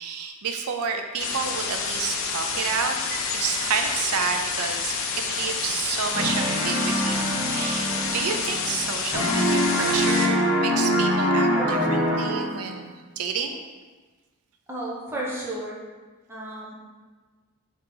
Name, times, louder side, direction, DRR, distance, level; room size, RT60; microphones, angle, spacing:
voice 1, 0.0-13.6, right 6 dB, 85° right, 5 dB, 0.4 m, -30 dB
sound 1, 1.2-10.3, left 5 dB, 60° left, 0.4 m, -29 dB
sound 2, 6.1-8.9 9.1-12.7, equal, 5° left, 1.4 m, -24 dB
voice 2, 14.7-15.8 16.3-16.7, right 1 dB, 10° right, -5 dB, 0.7 m, -32 dB
3.7 x 2.8 x 3.7 m, 1.3 s
head